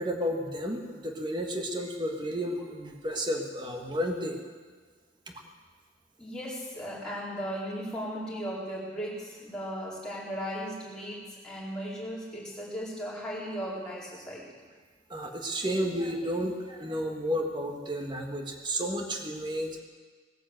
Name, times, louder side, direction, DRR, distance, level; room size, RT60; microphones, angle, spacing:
voice 1, 0.0-4.4 15.1-19.8, equal, 25° right, 3 dB, 1.7 m, -32 dB
voice 2, 6.2-14.4, equal, 5° left, -7 dB, 4.3 m, -36 dB
18.5 x 9.9 x 7.9 m, 1.5 s
head